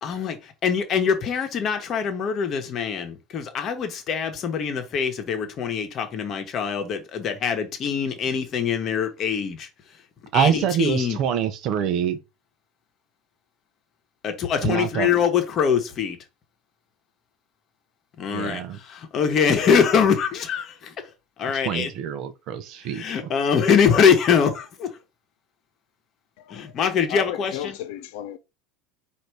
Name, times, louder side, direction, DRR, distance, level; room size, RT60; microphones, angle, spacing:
voice 1, 0.0-9.7 10.3-11.2 14.2-16.2 18.2-20.9 21.4-21.9 22.9-24.9 26.5-27.7, left 7 dB, 35° left, 1.1 m, -23 dB
voice 2, 10.3-12.2 14.6-15.1 18.3-18.8 21.4-23.3, right 9 dB, 45° right, 0.7 m, -25 dB
voice 3, 26.4-26.8 27.1-28.4, left 11 dB, 70° left, 0.6 m, -34 dB
4.1 x 2.7 x 4.7 m
supercardioid pair, 140°, 0 cm